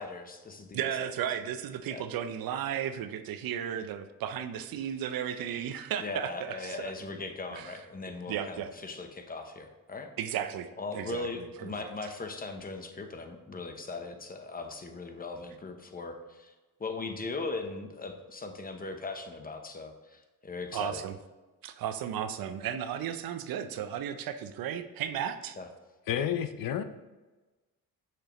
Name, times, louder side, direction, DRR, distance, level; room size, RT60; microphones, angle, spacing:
voice 1, 0.0-1.1 1.9-2.0 6.0-10.1 10.8-16.5 16.8-21.0 25.6-25.7, left 3 dB, 25° left, 6 dB, 0.8 m, -39 dB
voice 2, 0.7-6.9 7.5-7.8 8.3-8.7 10.2-11.7 20.7-21.2 21.6-25.6, right 9 dB, 70° right, 10 dB, 0.6 m, -35 dB
voice 3, 26.1-26.8, left 9 dB, 65° left, 10 dB, 0.6 m, -30 dB
6.6 x 6.1 x 3.0 m, 1.2 s
cardioid pair, 105°, 36 cm